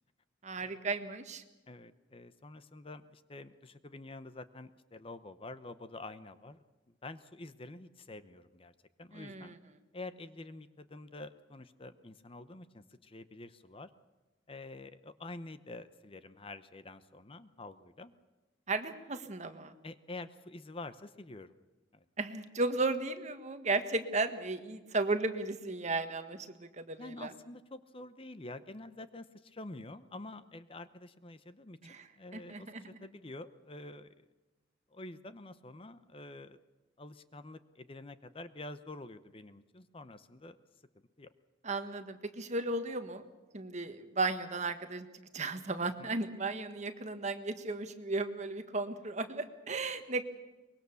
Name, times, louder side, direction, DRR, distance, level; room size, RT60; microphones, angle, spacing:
voice 1, 0.4-1.4 9.1-9.6 18.7-19.7 22.2-27.3 31.8-32.1 32.3-32.8 41.6-43.2 43.5-45.1 45.3-50.2, right 3 dB, 40° right, 8 dB, 1.5 m, -35 dB
voice 2, 1.7-6.6 7.0-9.6 9.9-13.9 14.5-18.1 19.8-21.5 21.9-22.0 27.0-34.1 34.9-36.6 37.0-40.6 41.2-41.3 46.0-46.1, left 2 dB, 30° left, 12 dB, 0.8 m, -48 dB
24.0 x 21.5 x 7.0 m, 1.2 s
head